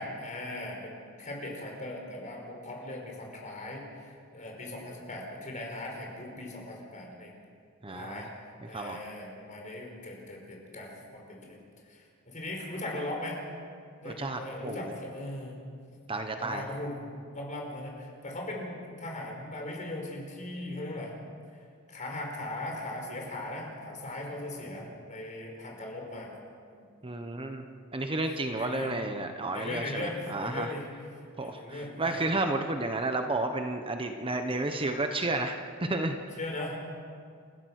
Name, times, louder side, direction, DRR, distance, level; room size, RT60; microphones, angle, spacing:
voice 1, 0.0-7.3 7.9-8.3 8.7-11.6 11.9-13.4 14.0-15.6 16.4-17.1 17.3-21.1 21.9-26.3 26.7-26.8 28.2-29.0 29.5-32.3 34.7-34.8 36.4-36.8, left 1 dB, 40° left, 0 dB, 5.2 m, -39 dB
voice 2, 7.8-8.3 8.7-9.0 14.0-14.9 16.1-16.6 27.0-27.6 27.9-30.7 31.4-36.2, right 2 dB, 25° right, 6 dB, 1.0 m, -32 dB
29.5 x 15.5 x 6.5 m, 2.2 s
head